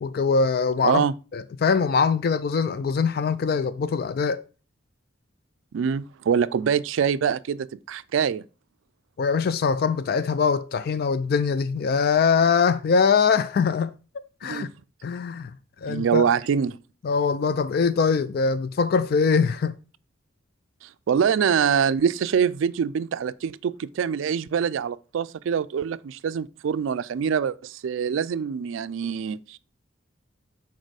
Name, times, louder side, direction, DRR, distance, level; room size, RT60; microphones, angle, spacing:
voice 1, 0.0-1.0 1.3-4.4 9.2-13.9 14.4-14.7 15.0-15.5 15.8-16.2 17.0-19.7, left 5 dB, 50° left, 0.3 m, -22 dB
voice 2, 0.8-1.1 5.7-8.4 14.4-14.7 15.9-16.8 20.8-29.6, right 7 dB, 75° right, 0.3 m, -24 dB
6.5 x 4.2 x 4.7 m
head